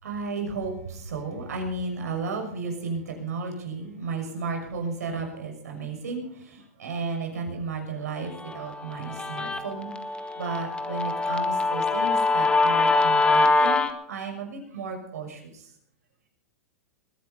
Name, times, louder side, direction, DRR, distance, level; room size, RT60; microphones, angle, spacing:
voice 1, 0.0-9.9 10.4-15.6, right 4 dB, 85° right, 3 dB, 6.3 m, -33 dB
Guitar, 8.4-13.9, left 3 dB, 10° left, 1.6 m, -24 dB
21.0 x 11.0 x 5.4 m, 0.68 s
hypercardioid pair, 130°, 8 cm